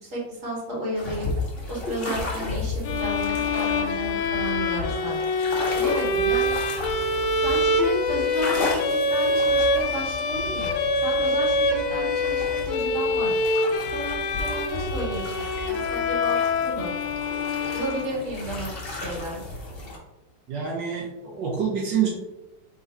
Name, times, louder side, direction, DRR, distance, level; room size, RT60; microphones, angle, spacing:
voice 1, 0.0-1.3 1.7-5.2 5.7-6.5 7.3-13.3 13.9-16.9 17.7-19.4, equal, 45° right, -5 dB, 2.0 m, -32 dB
sound 1, 1.0-20.0, left 2 dB, 40° left, 1.0 m, -34 dB
sound 2, 2.8-18.5, left 2 dB, 75° left, 0.7 m, -25 dB
voice 2, 20.5-22.1, right 7 dB, 80° right, -3 dB, 1.5 m, -26 dB
5.0 x 3.7 x 2.7 m, 0.96 s
omnidirectional pair, 1.9 m